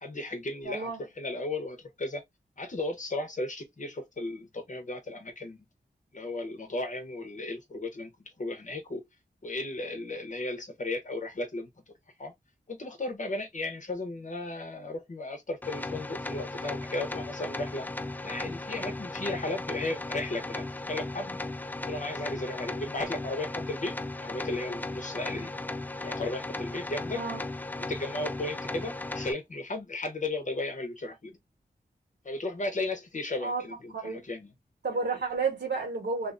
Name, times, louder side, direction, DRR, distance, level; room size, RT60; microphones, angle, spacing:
voice 1, 0.0-0.9 1.2-2.2 2.6-5.6 6.1-8.1 8.4-9.0 9.4-11.7 12.2-12.3 12.7-17.9 18.2-21.4 21.9-23.9 24.2-25.5 26.0-27.2 27.8-31.4 32.2-34.5, left 2 dB, 45° left, 0.9 m, -35 dB
voice 2, 0.6-1.0 27.1-27.4 33.4-33.6 33.9-34.2 34.8-36.3, right 4 dB, 75° right, 1.3 m, -31 dB
sound 1, 15.6-29.3, left 2 dB, 10° left, 0.3 m, -36 dB
2.7 x 2.4 x 2.5 m
cardioid pair, 45°, 17 cm